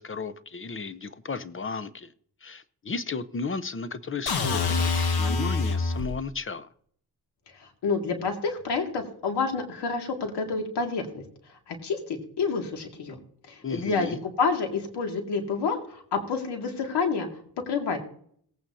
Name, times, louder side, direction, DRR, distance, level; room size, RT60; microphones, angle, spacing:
voice 1, 0.0-2.1 2.4-6.7 13.6-14.2, left 4 dB, 30° left, 15 dB, 0.8 m, -34 dB
sound 1, 4.3-6.2, left 4 dB, 65° left, 1.6 m, -25 dB
voice 2, 7.6-11.2 11.7-13.2 13.5-17.3 17.7-18.0, left 4 dB, 80° left, 3 dB, 2.3 m, -28 dB
18.5 x 8.7 x 2.8 m, 0.62 s
cardioid pair, 70°, 40 cm